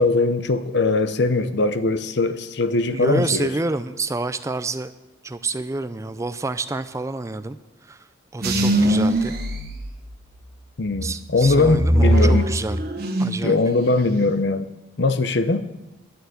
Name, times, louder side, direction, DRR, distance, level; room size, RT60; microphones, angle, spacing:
voice 1, 0.0-3.5 10.8-12.5 13.4-14.7 15.0-15.7, left 3 dB, 60° left, 0.7 m, -20 dB
voice 2, 2.9-4.9 5.2-7.6 7.9-8.1 8.3-9.4 11.0-12.8 13.2-13.6, right 3 dB, 15° right, 0.4 m, -28 dB
sound 1, 8.4-10.5 10.9-13.5 13.8-14.4, right 1 dB, 50° right, 1.3 m, -21 dB
11.0 x 6.9 x 9.3 m
head